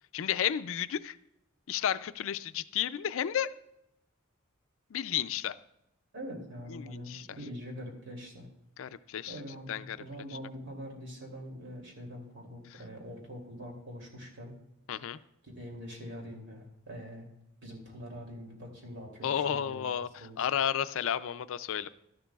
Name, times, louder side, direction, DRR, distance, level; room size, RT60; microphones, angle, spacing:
voice 1, 0.1-1.2 1.7-3.5 4.9-5.6 6.7-7.3 8.8-9.4 9.7-10.0 12.7-12.8 14.9-15.2 19.2-21.9, left 9 dB, 70° left, 13 dB, 0.4 m, -32 dB
voice 2, 6.1-8.5 9.3-14.6 15.1-15.2 15.4-17.3 17.6-19.8 20.2-20.5, equal, 60° right, 0 dB, 2.7 m, -44 dB
12.5 x 11.5 x 2.3 m, 0.83 s
head